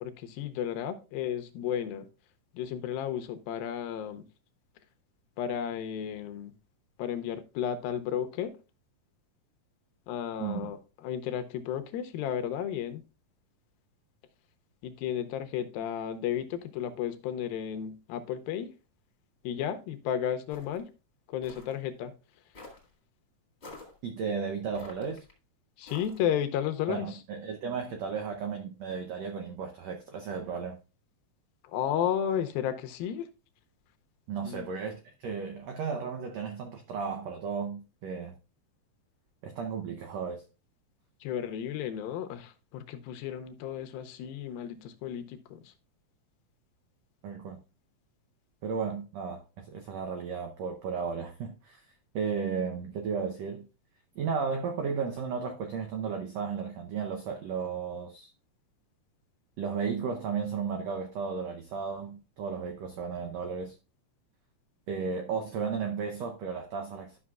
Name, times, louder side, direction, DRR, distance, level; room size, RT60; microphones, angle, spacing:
voice 1, 0.0-2.1 2.5-4.3 5.4-6.5 7.0-8.5 10.1-13.0 14.8-18.7 19.4-20.9 21.3-22.1 25.8-27.1 31.7-33.3 34.4-34.7 41.2-45.7, left 9 dB, 90° left, 2.6 m, -33 dB
voice 2, 10.4-10.7 24.0-25.2 26.9-30.8 34.3-38.3 39.4-40.4 47.2-47.6 48.6-51.8 52.1-53.7 54.1-58.3 59.6-63.7 64.9-67.2, right 6 dB, 90° right, 1.4 m, -34 dB
sound 1, 20.5-20.8 21.4-21.8 22.5-22.9 23.6-24.0 24.7-25.3 25.9-26.3, left 2 dB, 25° left, 1.3 m, -48 dB
12.0 x 6.0 x 2.3 m
omnidirectional pair, 4.1 m